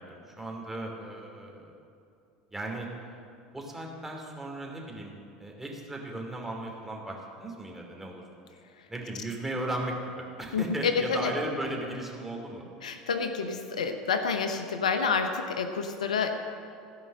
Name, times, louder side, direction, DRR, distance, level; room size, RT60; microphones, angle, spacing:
voice 1, 0.0-1.7 2.5-2.9 3.5-8.2 8.9-12.6, right 1 dB, 10° right, 0 dB, 2.7 m, -36 dB
voice 2, 10.5-11.3 12.8-16.3, left 5 dB, 85° left, 7 dB, 0.8 m, -28 dB
15.5 x 5.3 x 7.6 m, 2.6 s
hypercardioid pair, 80°, 4 cm